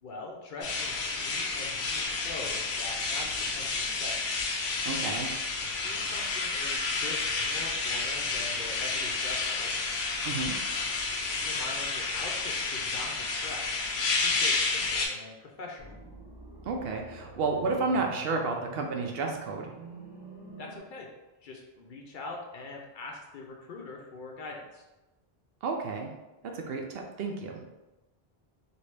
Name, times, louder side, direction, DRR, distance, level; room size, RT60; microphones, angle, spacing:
voice 1, 0.0-4.2 5.7-9.7 11.3-13.7 14.1-16.0 20.6-21.1 21.4-24.8, left 3 dB, 60° left, 0 dB, 0.7 m, -43 dB
sound 1, 0.6-15.1, left 3 dB, 90° left, 0.9 m, -30 dB
voice 2, 4.8-5.3 10.2-10.5 16.7-19.7 25.6-26.1 26.5-27.7, right 3 dB, 70° right, 2 dB, 0.8 m, -31 dB
sound 2, 15.8-20.8, right 2 dB, 30° right, 0.6 m, -48 dB
2.9 x 2.7 x 3.2 m, 1.0 s
omnidirectional pair, 1.0 m